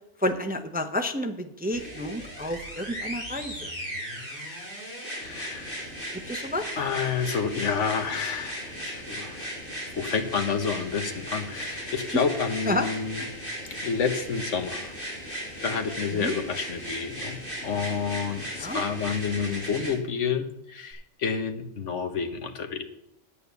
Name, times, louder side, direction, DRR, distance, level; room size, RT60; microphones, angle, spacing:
voice 1, 0.2-3.7 6.3-6.7 12.7-12.9 13.2-13.3 16.1-16.4 18.5-18.8, left 1 dB, 10° right, 6 dB, 0.5 m, -30 dB
sound 1, 1.7-19.9 20.9-21.0, equal, 10° left, 4.4 m, -37 dB
voice 2, 5.2-5.8 6.8-9.5 10.0-13.2 13.6-14.9 15.6-22.8, left 6 dB, 80° left, 7 dB, 1.4 m, -29 dB
9.2 x 8.5 x 6.9 m, 0.82 s
omnidirectional pair, 1.2 m